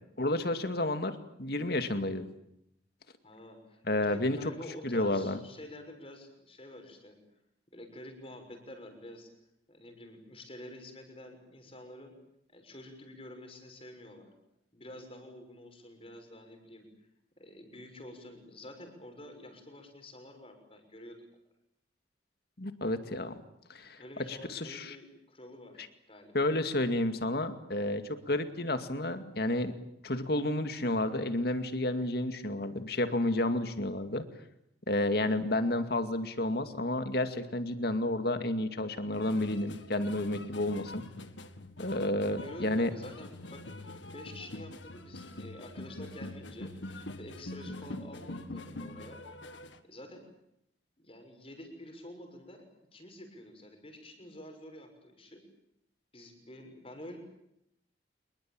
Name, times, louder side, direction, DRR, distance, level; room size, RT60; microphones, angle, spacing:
voice 1, 0.2-2.3 3.9-4.4 4.8-5.4 22.6-23.3 23.7-24.0 24.3-25.0 26.3-29.7 30.0-34.2 34.9-41.0 41.8-42.9, left 1 dB, 55° left, 9 dB, 2.3 m, -31 dB
voice 2, 3.2-7.2 7.7-9.3 9.7-12.1 12.5-14.3 14.7-16.9 17.4-21.2 24.0-26.5 42.3-46.7 47.2-49.2 49.8-50.3 51.0-52.6 52.9-55.4 56.1-57.2, left 1 dB, 30° left, 5 dB, 6.3 m, -48 dB
sound 1, 39.1-49.8, left 1 dB, 85° left, 1.9 m, -44 dB
27.0 x 22.0 x 9.0 m, 0.80 s
head